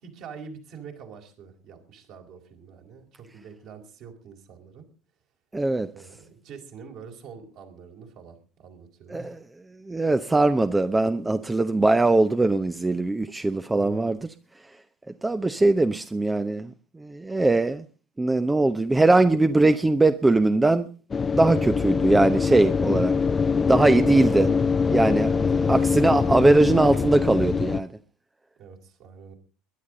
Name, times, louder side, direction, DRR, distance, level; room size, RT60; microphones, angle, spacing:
voice 1, 0.0-4.8 5.9-9.3 13.7-14.2 23.8-24.0 25.2-25.7 28.6-29.3, right 6 dB, 55° right, 4.6 m, -45 dB
voice 2, 5.5-5.9 9.1-9.4 9.8-14.2 15.2-17.8 18.2-20.9 21.3-23.1 23.7-24.5 24.9-25.3 25.7-27.9, right 2 dB, 15° right, 0.8 m, -21 dB
sound 1, 21.1-27.8, left 5 dB, 25° left, 0.8 m, -23 dB
21.5 x 11.0 x 3.9 m
figure-of-eight pair, 70°, 0 cm